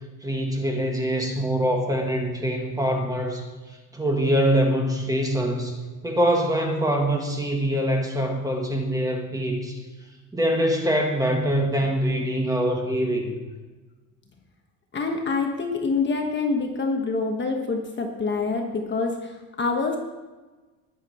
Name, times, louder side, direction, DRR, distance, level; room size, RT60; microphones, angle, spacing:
voice 1, 0.2-3.5 3.9-5.8 6.0-9.8 10.3-13.4, equal, 10° right, 1 dB, 1.6 m, -24 dB
voice 2, 14.9-20.0, left 4 dB, 25° left, 2 dB, 1.2 m, -26 dB
20.0 x 7.4 x 4.3 m, 1.2 s
cardioid pair, 160°, 42 cm